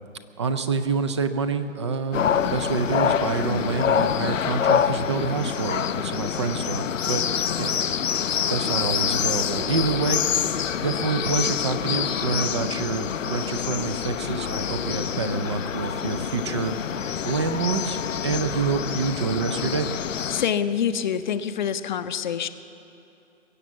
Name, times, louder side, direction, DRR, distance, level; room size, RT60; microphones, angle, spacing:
voice 1, 0.4-7.2 7.6-7.8 8.1-16.7 17.0-19.9, right 5 dB, 25° right, 10 dB, 0.4 m, -27 dB
sound 1, 2.1-20.5, left 8 dB, 85° left, 0.6 m, -26 dB
voice 2, 20.3-22.5, left 8 dB, 40° left, 10 dB, 0.6 m, -26 dB
22.0 x 8.1 x 7.3 m, 2.7 s
hypercardioid pair, 145°, 37 cm